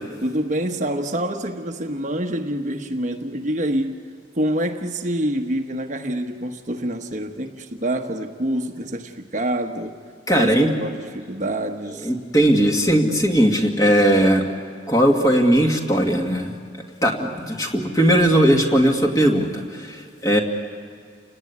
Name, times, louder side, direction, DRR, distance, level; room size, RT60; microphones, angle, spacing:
voice 1, 0.2-4.0 4.3-10.0 10.4-12.1, right 1 dB, 40° right, 4 dB, 1.2 m, -26 dB
voice 2, 10.3-10.7 12.0-14.4 14.9-16.6 17.0-20.4, right 1 dB, 20° left, 2 dB, 2.0 m, -18 dB
29.5 x 18.0 x 9.5 m, 2.1 s
head